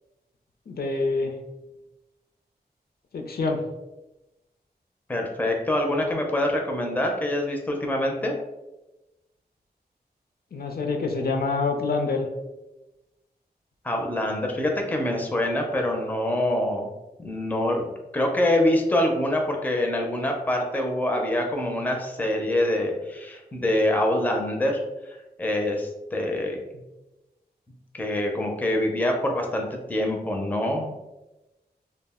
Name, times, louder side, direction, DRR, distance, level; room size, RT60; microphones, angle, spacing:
voice 1, 0.7-1.3 3.1-3.6 10.5-12.3, left 3 dB, 65° left, 2 dB, 0.4 m, -26 dB
voice 2, 5.1-8.4 13.8-16.9 17.2-17.9 18.1-24.8 25.4-26.6 27.9-30.9, left 1 dB, 10° left, 2 dB, 0.4 m, -25 dB
2.3 x 2.0 x 3.5 m, 1.0 s
wide cardioid pair, 110°, 17 cm